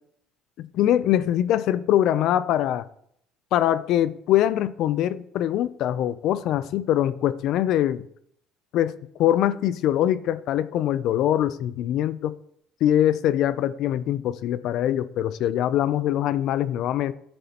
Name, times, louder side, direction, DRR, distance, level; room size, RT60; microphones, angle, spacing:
voice 1, 0.6-2.9 3.5-8.1 8.7-12.4 12.8-17.1, left 11 dB, 65° left, 0.5 m, -23 dB
12.5 x 8.9 x 2.9 m
supercardioid pair, 95°, 0 cm